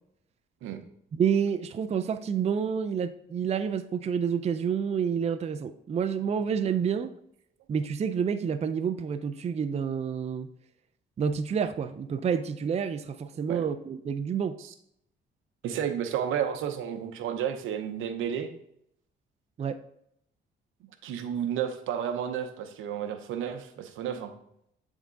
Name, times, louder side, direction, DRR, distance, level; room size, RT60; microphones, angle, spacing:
voice 1, 1.1-7.1 7.7-10.5 11.2-14.5 19.6-19.8, right 7 dB, 35° right, 10 dB, 0.4 m, -29 dB
voice 2, 15.6-18.5 21.0-24.3, right 9 dB, 85° right, 8 dB, 0.7 m, -31 dB
8.2 x 3.6 x 3.8 m, 0.73 s
cardioid pair, 90°, 20 cm